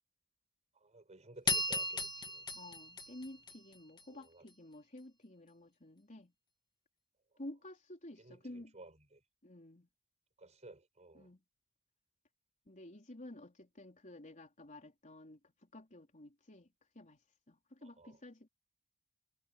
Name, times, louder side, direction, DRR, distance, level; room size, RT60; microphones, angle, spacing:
voice 1, 0.8-2.5 4.1-4.4 8.2-8.4 8.7-9.2 10.4-11.3 18.0-18.2, right 2 dB, 30° right, 4.7 m, -55 dB
sound 1, 1.5-4.0, left 3 dB, 20° left, 1.8 m, -36 dB
voice 2, 2.5-6.3 7.4-8.8 9.4-9.9 11.1-11.4 12.7-16.7 16.9-17.2 17.5-18.5, left 1 dB, 35° left, 4.0 m, -52 dB
head